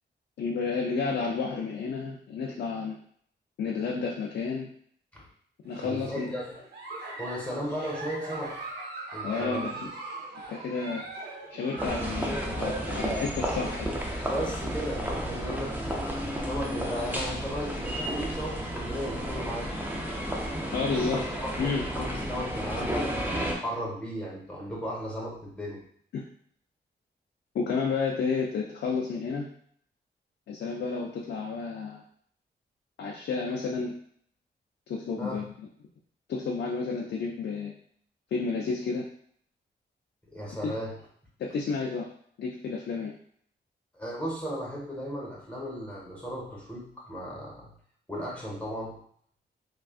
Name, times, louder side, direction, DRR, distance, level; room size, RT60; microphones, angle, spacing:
voice 1, 0.4-3.0 3.6-4.7 5.6-6.3 9.2-9.7 10.5-11.0 11.5-14.2 20.7-21.2 21.6-21.9 26.1-26.2 27.5-29.5 30.5-32.0 33.0-33.9 34.9-35.4 36.3-37.7 38.3-39.1 40.6-40.7 41.4-42.1 42.4-43.1, left 4 dB, 70° left, -2 dB, 0.4 m, -31 dB
Giggle, 5.6-12.3, right 2 dB, 65° right, 0.8 m, -40 dB
voice 2, 5.8-6.6 7.2-8.6 9.1-9.8 14.2-19.7 20.9-25.8 35.2-35.5 40.3-41.0 43.9-47.7 48.1-49.0, equal, 5° left, -4 dB, 1.2 m, -36 dB
sound 1, 11.8-23.5, equal, 10° right, 0.5 m, -32 dB
3.4 x 2.3 x 2.4 m, 0.62 s
wide cardioid pair, 110°, 18 cm